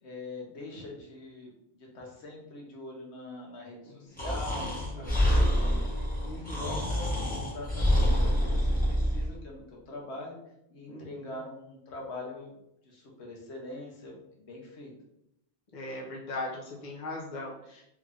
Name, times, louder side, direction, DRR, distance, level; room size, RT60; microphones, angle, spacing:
voice 1, 0.0-5.8 6.3-10.4 10.7-12.5 12.8-14.9, left 2 dB, 80° left, -1 dB, 1.2 m, -43 dB
Breathing, 4.2-9.3, equal, 10° left, 0.8 m, -27 dB
voice 2, 4.8-5.2 6.2-6.8 10.9-11.4 15.7-17.8, left 2 dB, 45° left, -2 dB, 0.9 m, -40 dB
3.3 x 2.5 x 3.4 m, 0.79 s
omnidirectional pair, 1.1 m